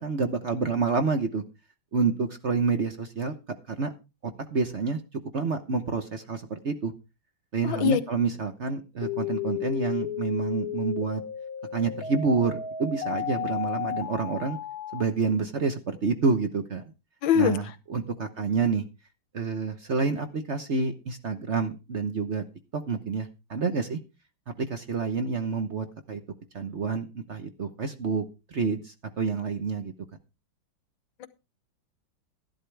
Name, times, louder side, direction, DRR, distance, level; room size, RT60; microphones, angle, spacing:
voice 1, 0.0-1.4 1.9-3.3 3.7-3.9 4.2-5.0 5.3-6.9 7.5-11.2 11.7-14.6 14.9-16.8 17.3-18.8 19.3-22.4 22.7-24.0 24.6-26.2 26.5-29.9, right 4 dB, 45° right, 8 dB, 1.0 m, -28 dB
voice 2, 7.6-8.0 17.2-17.6 31.2-31.3, left 8 dB, 80° left, 14 dB, 1.6 m, -22 dB
sound 1, 9.0-15.0, left 9 dB, 55° left, 1.5 m, -33 dB
12.5 x 12.0 x 3.4 m, 0.28 s
omnidirectional pair, 2.1 m